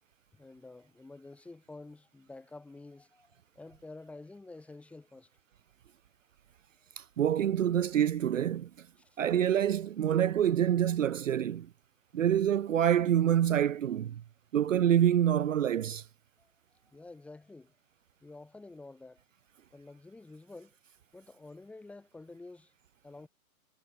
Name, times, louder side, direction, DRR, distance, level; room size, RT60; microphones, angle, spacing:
voice 1, 0.3-5.3 9.0-9.2 16.4-17.8 18.2-19.2 19.7-20.8 21.1-22.7 23.0-23.3, left 2 dB, 5° left, 1.4 m, -50 dB
voice 2, 7.0-8.7 9.2-11.7 12.1-14.2 14.5-16.0, right 10 dB, 60° right, 0.7 m, -26 dB
hypercardioid pair, 150°, 44 cm